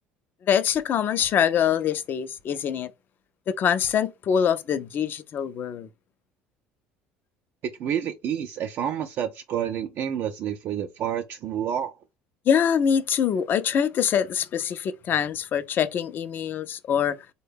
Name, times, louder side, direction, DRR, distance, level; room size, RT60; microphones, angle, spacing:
voice 1, 0.4-2.9 3.5-5.9 12.5-17.2, left 8 dB, 45° left, 0.5 m, -24 dB
voice 2, 7.8-11.9, right 9 dB, 55° right, 0.4 m, -29 dB
3.8 x 2.2 x 3.4 m
supercardioid pair, 95°, 5 cm